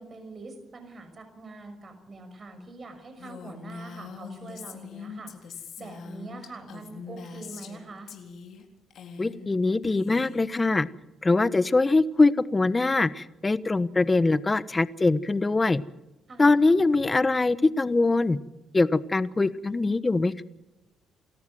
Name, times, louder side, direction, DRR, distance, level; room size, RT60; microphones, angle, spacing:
voice 1, 0.0-8.1 16.3-16.5, right 3 dB, 40° right, 7 dB, 6.0 m, -44 dB
Female speech woman speaking, 3.2-7.8 8.1-8.6 8.9-9.5 9.8-10.5, left 5 dB, 70° left, 3.9 m, -42 dB
voice 2, 9.2-10.9 11.2-15.8 16.4-18.4 18.7-20.4, left 3 dB, 20° left, 15 dB, 1.1 m, -23 dB
28.5 x 14.0 x 7.7 m, 0.98 s
cardioid pair, 90°, 0 cm